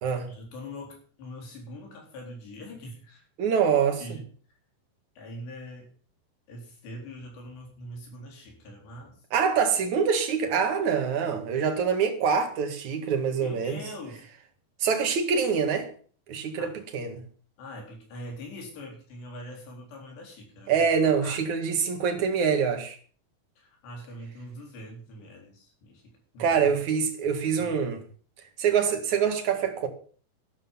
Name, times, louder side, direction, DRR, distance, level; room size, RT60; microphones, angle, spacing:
voice 1, 0.3-3.2 4.0-4.3 5.2-5.9 6.5-9.2 13.4-14.3 16.6-16.8 17.6-21.4 23.6-26.7 27.6-27.7, left 1 dB, 75° left, 6.2 m, -43 dB
voice 2, 3.4-4.0 9.3-13.8 14.8-15.9 16.3-17.2 20.7-23.0 26.4-28.0 28.6-29.9, right 6 dB, 50° right, 2.7 m, -25 dB
12.5 x 12.0 x 5.7 m
omnidirectional pair, 5.0 m